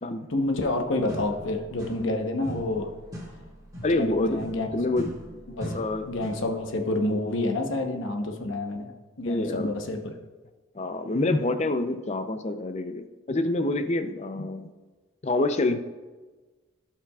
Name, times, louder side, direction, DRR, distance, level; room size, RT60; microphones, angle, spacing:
voice 1, 0.3-2.9 3.9-4.7 5.5-10.0, left 2 dB, 70° left, 4 dB, 1.0 m, -29 dB
sound 1, 1.1-2.2 2.4-6.6, equal, 20° right, 2.6 m, -40 dB
voice 2, 3.8-4.4 4.7-5.1 5.7-6.0 9.2-9.7 10.7-14.7 15.2-15.8, left 2 dB, 35° left, 9 dB, 0.5 m, -26 dB
17.0 x 5.8 x 2.4 m, 1.3 s
head